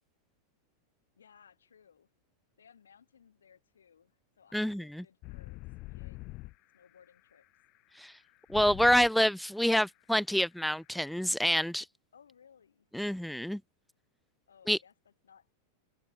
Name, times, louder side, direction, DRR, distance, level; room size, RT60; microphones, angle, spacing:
voice 1, 1.2-2.1 2.6-6.3 6.7-7.5 12.1-12.9 14.5-15.6, left 7 dB, 70° left, 7.2 m, -61 dB
voice 2, 4.5-5.0 8.0-8.1 8.5-11.9 12.9-13.6 14.7-14.8, equal, ahead, 0.4 m, -27 dB
sound 1, 5.2-9.1 9.4-9.6 10.0-10.2 10.5-10.6 10.9-11.1, left 22 dB, 40° left, 0.6 m, -44 dB
open air
figure-of-eight pair, 90°, 0 cm